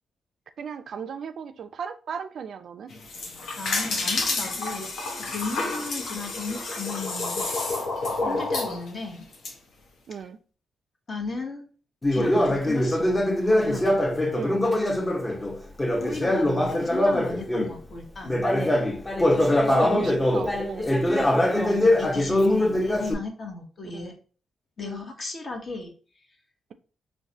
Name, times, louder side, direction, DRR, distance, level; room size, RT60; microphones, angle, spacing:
voice 1, 0.6-2.9 8.2-8.5 10.1-10.4 14.3-14.6 19.7-20.9 23.9-24.1 24.8-25.1, right 7 dB, 65° right, 0.3 m, -36 dB
sound 1, 2.9-9.5, left 3 dB, 70° left, 0.8 m, -29 dB
voice 2, 3.6-4.9 5.2-7.5 8.3-9.3 11.1-11.6 12.1-14.0 16.0-18.4 21.5-24.1 24.8-25.9, left 3 dB, 50° left, 1.1 m, -35 dB
Conversation, 12.0-17.8 18.2-23.1, left 1 dB, 25° left, 0.8 m, -23 dB
4.6 x 2.2 x 2.7 m
supercardioid pair, 50°, 0 cm